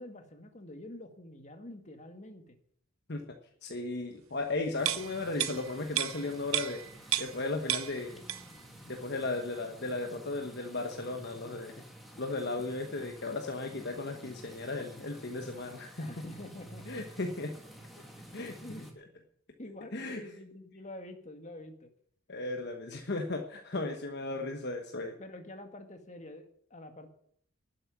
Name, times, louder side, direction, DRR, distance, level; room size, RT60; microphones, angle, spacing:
voice 1, 0.0-2.6 16.0-17.0 18.6-18.9 19.6-21.9 25.2-27.1, left 1 dB, 35° left, 6 dB, 1.9 m, -47 dB
voice 2, 3.6-6.8 7.2-8.2 8.9-11.8 12.2-16.1 16.9-17.5 18.3-18.6 19.9-20.2 22.3-25.1, left 2 dB, 50° left, 4 dB, 1.2 m, -35 dB
sound 1, 4.8-18.9, equal, ahead, 2.1 m, -51 dB
sound 2, 4.8-7.4 7.7-8.7 9.0-9.1, right 12 dB, 80° right, 0.8 m, -33 dB
12.0 x 7.8 x 9.5 m, 0.64 s
head